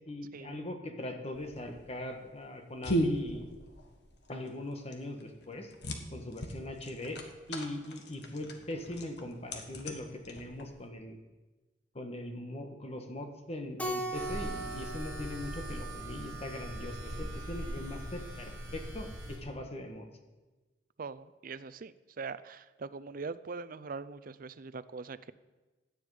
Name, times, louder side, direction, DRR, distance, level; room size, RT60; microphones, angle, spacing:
voice 1, 0.1-3.5 4.3-5.7 6.1-7.2 7.5-11.2 11.9-20.1, left 1 dB, 35° left, 5 dB, 1.5 m, -41 dB
sound 1, 1.3-10.9, equal, 65° left, 1.6 m, -38 dB
Keyboard (musical), 13.8-16.4, right 1 dB, 10° left, 1.5 m, -39 dB
sound 2, 14.1-19.4, right 1 dB, 20° right, 5.0 m, -41 dB
voice 2, 21.0-25.3, right 4 dB, 50° right, 16 dB, 0.5 m, -42 dB
16.5 x 10.5 x 5.0 m, 1.2 s
head